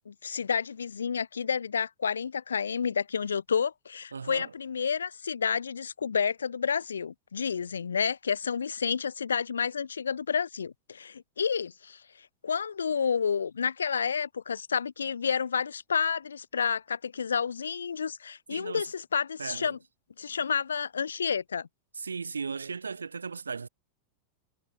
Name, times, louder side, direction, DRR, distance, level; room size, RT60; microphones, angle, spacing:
voice 1, 0.1-12.0 12.4-19.8 20.2-21.7, left 6 dB, 70° left, 6.3 m, -30 dB
voice 2, 4.1-4.5 18.5-18.9 19.4-19.8 21.9-23.7, right 5 dB, 75° right, 7.9 m, -36 dB
figure-of-eight pair, 90°, 0 cm